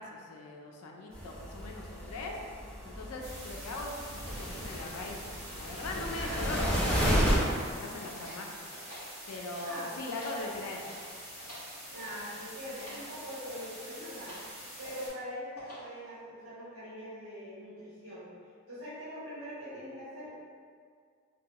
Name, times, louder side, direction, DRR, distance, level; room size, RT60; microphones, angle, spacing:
voice 1, 0.0-2.4 2.8-5.2 5.6-8.7 9.3-10.8, left 2 dB, 85° left, 0 dB, 0.4 m, -40 dB
sound 1, 1.1-7.4, equal, 5° left, 0.4 m, -32 dB
sound 2, 3.2-15.1, equal, 25° right, 1.0 m, -46 dB
voice 2, 6.1-6.7 9.6-10.1 11.9-14.4 14.8-18.3 18.7-20.3, equal, 65° right, -13 dB, 1.1 m, -43 dB
sound 3, 7.4-8.4 8.7-9.7 10.0-11.7 12.1-12.4 12.8-13.1 13.4-13.8 14.2-14.5 14.8-15.2 15.6-16.0, equal, 40° left, 1.3 m, -49 dB
2.6 x 2.3 x 2.8 m, 2.2 s
head